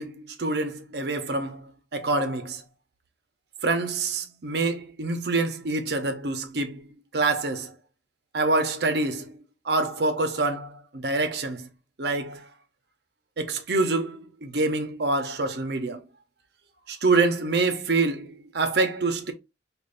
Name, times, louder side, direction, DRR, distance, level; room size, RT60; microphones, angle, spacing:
voice 1, 0.0-2.6 3.6-6.8 7.1-7.7 8.3-11.7 12.0-12.4 13.4-16.0 16.9-19.3, right 3 dB, 70° right, 0.7 m, -26 dB
5.0 x 2.5 x 2.5 m
head